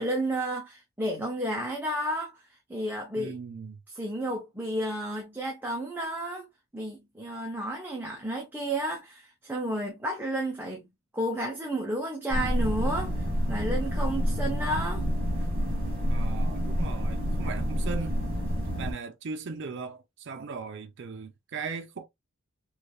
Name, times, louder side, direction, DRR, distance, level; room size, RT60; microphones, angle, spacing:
voice 1, 0.0-2.4 2.7-3.4 3.9-6.5 6.7-10.9 11.1-15.0, right 1 dB, 10° right, 0.7 m, -32 dB
voice 2, 3.2-3.8 16.1-18.2 18.8-22.1, right 4 dB, 60° right, 0.5 m, -38 dB
sound 1, 12.3-18.9, equal, 45° right, 1.5 m, -28 dB
3.3 x 3.1 x 2.3 m
head